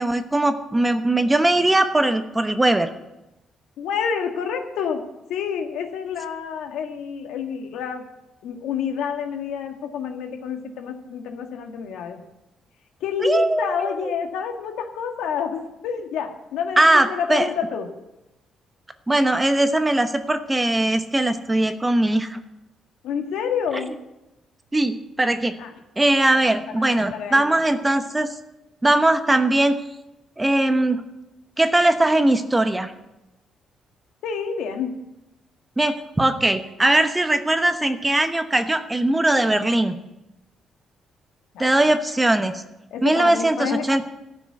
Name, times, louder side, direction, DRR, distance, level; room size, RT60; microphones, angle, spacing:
voice 1, 0.0-2.9 13.2-14.1 16.8-17.5 19.1-22.4 24.7-25.5 26.0-28.3 28.8-29.8 30.4-31.0 31.6-32.9 35.8-40.0 41.6-42.6 43.0-44.0, right 1 dB, 15° right, 9 dB, 1.0 m, -20 dB
voice 2, 3.8-5.0 5.3-8.0 8.4-12.2 13.0-17.9 23.0-23.9 25.6-25.7 26.2-27.4 34.2-34.9 41.5-41.8 42.9-43.9, left 7 dB, 85° left, 4 dB, 1.7 m, -28 dB
13.0 x 6.1 x 9.4 m, 0.95 s
cardioid pair, 90°, 0 cm